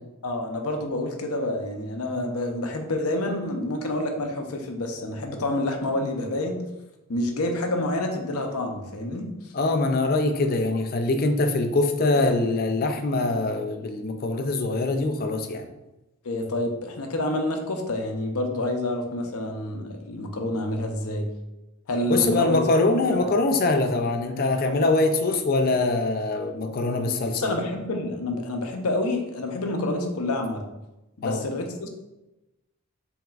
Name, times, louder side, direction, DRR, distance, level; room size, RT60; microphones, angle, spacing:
voice 1, 0.2-6.6 7.1-9.3 12.1-12.2 16.2-21.3 21.9-22.6 23.1-23.3 27.3-30.6 31.2-31.9, left 1 dB, 80° left, 4 dB, 0.7 m, -28 dB
voice 2, 9.5-15.7 22.1-27.5 31.2-31.5, left 2 dB, 40° left, 6 dB, 0.4 m, -23 dB
6.1 x 3.6 x 2.4 m, 0.98 s
head